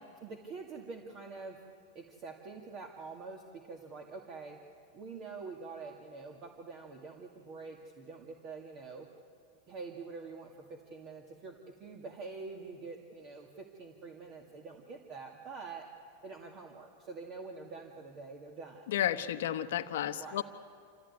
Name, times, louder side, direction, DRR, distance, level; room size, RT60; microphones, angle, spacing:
voice 1, 0.2-1.6 1.9-4.6 4.9-9.1 9.7-15.9 16.2-18.9 20.1-20.4, right 4 dB, 45° right, 1 dB, 2.2 m, -46 dB
voice 2, 18.9-20.4, left 11 dB, 75° left, 9 dB, 1.0 m, -32 dB
26.5 x 15.0 x 9.7 m, 2.2 s
hypercardioid pair, 120°, 0 cm